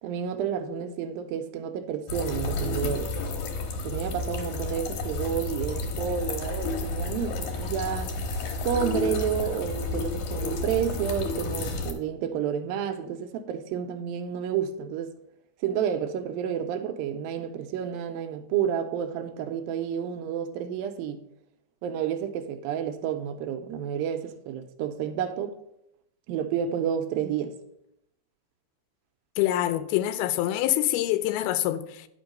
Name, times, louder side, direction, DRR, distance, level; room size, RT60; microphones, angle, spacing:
voice 1, 0.0-3.1 3.8-8.2 8.6-15.1 15.6-21.2 21.8-25.5 26.3-27.6, right 8 dB, 80° right, 2.3 m, -30 dB
sound 1, 2.1-11.9, left 3 dB, 65° left, 2.3 m, -31 dB
voice 2, 29.4-32.1, left 13 dB, 90° left, 2.5 m, -25 dB
10.0 x 5.3 x 5.1 m
omnidirectional pair, 4.3 m